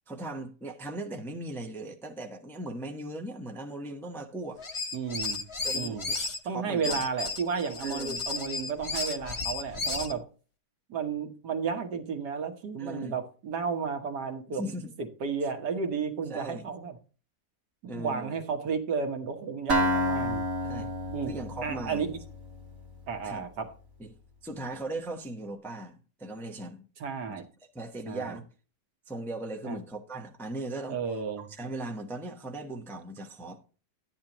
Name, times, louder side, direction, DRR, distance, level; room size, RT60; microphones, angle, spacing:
voice 1, 0.1-4.6 5.6-7.0 7.8-8.2 12.8-13.2 14.5-14.9 16.3-16.7 17.9-18.4 20.6-20.9 21.3-22.0 23.2-23.4 24.0-24.1 24.4-26.9 27.3-27.4 27.7-28.5 29.1-31.0 31.4-33.6, right 2 dB, ahead, 0.7 m, -38 dB
sound 1, 4.6-6.4 6.8-10.1, left 4 dB, 55° left, 0.3 m, -33 dB
voice 2, 4.9-5.4 5.7-6.1 6.5-10.3 10.9-14.6 15.0-17.0 17.8-20.4 21.1-21.3 21.6-22.2 23.1-23.7 27.0-27.5 28.1-28.4 29.6-29.8 30.9-31.4, right 5 dB, 80° right, 1.8 m, -32 dB
Acoustic guitar, 19.7-23.5, equal, 55° right, 2.2 m, -30 dB
12.0 x 9.4 x 3.0 m
omnidirectional pair, 1.8 m